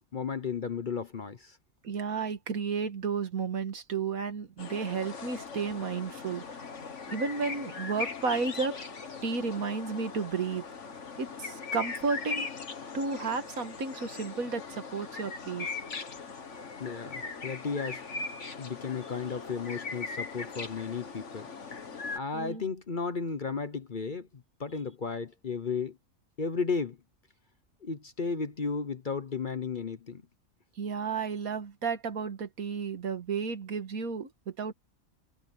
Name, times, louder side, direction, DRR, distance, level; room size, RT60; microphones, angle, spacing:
voice 1, 0.1-1.6 16.8-18.0 18.6-21.5 22.1-26.0 26.4-27.0 27.8-30.2, left 5 dB, 40° left, 0.9 m, -34 dB
voice 2, 1.8-6.5 7.1-8.8 9.2-10.7 11.2-12.5 12.9-15.7 22.3-22.6 30.8-34.7, right 5 dB, 75° right, 2.0 m, -32 dB
sound 1, 4.6-22.2, left 4 dB, 55° left, 1.9 m, -40 dB
omnidirectional pair, 1.5 m